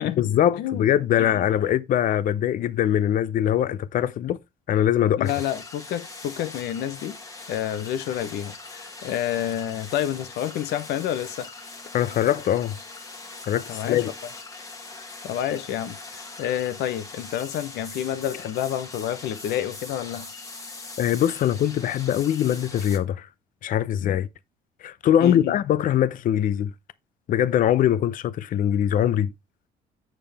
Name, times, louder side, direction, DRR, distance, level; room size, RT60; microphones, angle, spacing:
voice 1, 0.2-4.4 4.7-5.3 11.9-12.7 13.5-14.1 21.0-23.3 23.6-24.3 24.8-26.7 27.3-29.3, left 10 dB, 55° left, 0.6 m, -22 dB
voice 2, 5.2-7.2 7.5-11.5 13.7-14.0 15.2-20.3 24.0-24.2 25.2-25.5, left 11 dB, 75° left, 1.0 m, -29 dB
sound 1, 5.2-23.0, left 3 dB, 20° left, 1.5 m, -41 dB
7.5 x 6.8 x 3.4 m
cardioid pair, 110°, 17 cm